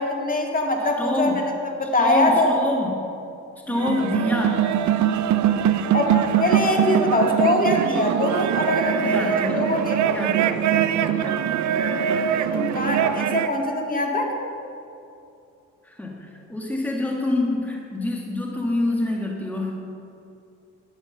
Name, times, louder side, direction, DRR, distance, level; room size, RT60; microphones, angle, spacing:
voice 1, 0.0-1.4 1.8-2.5 5.9-10.0 12.4-14.3, left 2 dB, 30° left, 1 dB, 2.0 m, -23 dB
voice 2, 1.0-1.4 2.0-3.0 3.6-4.7 9.0-9.7 10.0-11.4 15.8-19.7, left 2 dB, 5° left, -1 dB, 1.6 m, -26 dB
sound 1, 3.7-13.5, right 9 dB, 70° right, 0.6 m, -22 dB
10.5 x 9.5 x 6.7 m, 2.6 s
cardioid pair, 90°, 30 cm